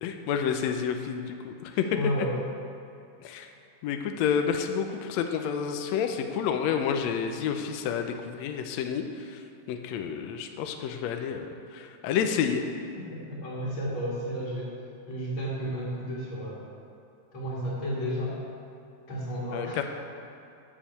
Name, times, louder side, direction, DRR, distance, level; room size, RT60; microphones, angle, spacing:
voice 1, 0.0-1.8 3.2-3.5 3.8-9.4 9.7-12.6 19.5-19.8, left 7 dB, 85° left, 5 dB, 1.5 m, -29 dB
voice 2, 1.7-2.3 13.3-14.7 15.1-16.6 17.3-18.4 19.1-19.8, equal, 40° left, -7 dB, 2.5 m, -32 dB
10.0 x 7.2 x 7.0 m, 2.7 s
omnidirectional pair, 4.0 m